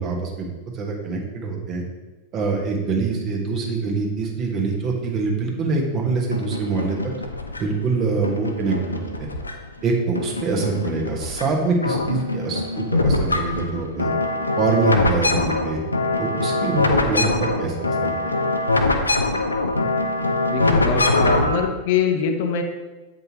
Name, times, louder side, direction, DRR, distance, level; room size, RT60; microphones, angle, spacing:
voice 1, 0.0-1.8 2.3-7.0 7.6-9.3 9.8-14.1 14.6-15.8 16.2-18.4, right 4 dB, 35° right, 0 dB, 1.3 m, -24 dB
sound 1, 6.3-7.8 8.2-9.8 10.1-11.4 11.7-21.7, left 2 dB, 80° left, 0.5 m, -23 dB
voice 2, 20.5-22.6, left 5 dB, 50° left, 4 dB, 0.8 m, -23 dB
8.0 x 5.2 x 3.0 m, 1.2 s
figure-of-eight pair, 90°, 0 cm